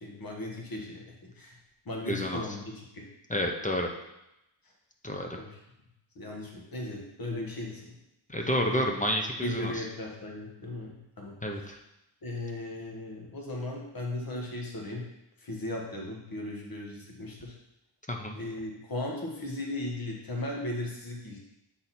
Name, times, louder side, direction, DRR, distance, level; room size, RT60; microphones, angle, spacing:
voice 1, 0.0-1.6 1.8-3.0 5.3-5.6 6.1-7.9 8.3-8.8 9.4-11.7 12.2-15.1 15.4-17.5 18.3-21.4, left 1 dB, 45° left, -1 dB, 1.5 m, -37 dB
voice 2, 2.1-2.4 3.3-3.9 5.0-5.4 8.3-9.8 11.4-11.8 18.1-18.3, equal, 15° left, 2 dB, 0.6 m, -30 dB
7.6 x 4.0 x 4.2 m, 0.87 s
wide cardioid pair, 160°, 47 cm